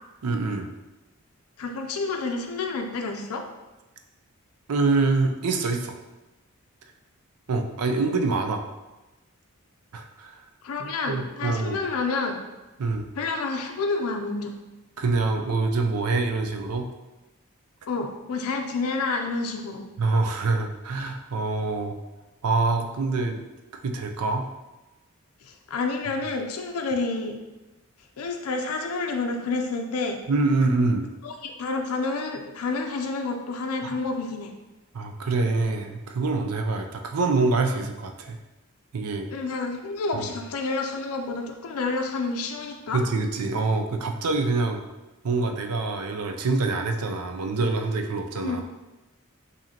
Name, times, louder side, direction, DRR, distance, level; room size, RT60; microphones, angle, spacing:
voice 1, 0.2-0.7 4.7-5.9 7.5-8.6 9.9-10.4 10.8-11.8 12.8-13.1 15.0-16.9 20.0-21.9 22.4-23.4 23.8-24.5 30.3-31.1 33.8-33.9 34.9-38.4 38.9-39.3 40.1-40.3 42.9-44.8 45.2-48.6, right 3 dB, 85° right, 5 dB, 0.5 m, -25 dB
voice 2, 1.6-3.4 10.6-12.4 13.2-14.5 17.9-19.8 25.4-27.4 28.2-30.2 31.2-34.5 39.3-43.0 48.4-48.6, left 3 dB, 80° left, 4 dB, 0.4 m, -29 dB
4.9 x 2.7 x 2.8 m, 1.1 s
head